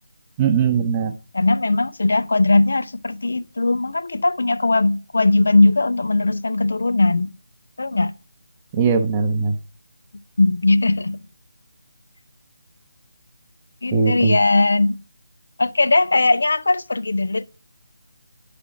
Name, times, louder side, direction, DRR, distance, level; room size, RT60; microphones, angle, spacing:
voice 1, 0.4-1.2 8.7-9.6 13.9-14.4, right 5 dB, 15° right, 0.8 m, -19 dB
voice 2, 1.3-7.3 7.8-8.1 10.4-11.2 13.8-15.0 15.6-17.4, left 2 dB, 60° left, 0.6 m, -19 dB
10.0 x 5.2 x 5.9 m
figure-of-eight pair, 155°, 0 cm